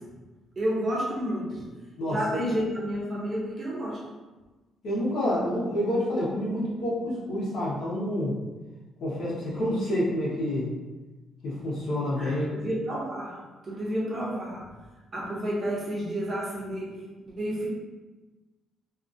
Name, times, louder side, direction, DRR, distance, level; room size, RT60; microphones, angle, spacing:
voice 1, 0.6-1.6 2.1-4.0 12.2-13.4 13.6-14.6 15.1-16.9 17.3-17.7, equal, 30° right, -5 dB, 0.7 m, -30 dB
voice 2, 2.0-2.4 4.8-8.4 9.0-10.7 11.4-12.5, left 1 dB, 70° left, -7 dB, 1.0 m, -28 dB
2.7 x 2.6 x 2.5 m, 1.2 s
cardioid pair, 170°, 0 cm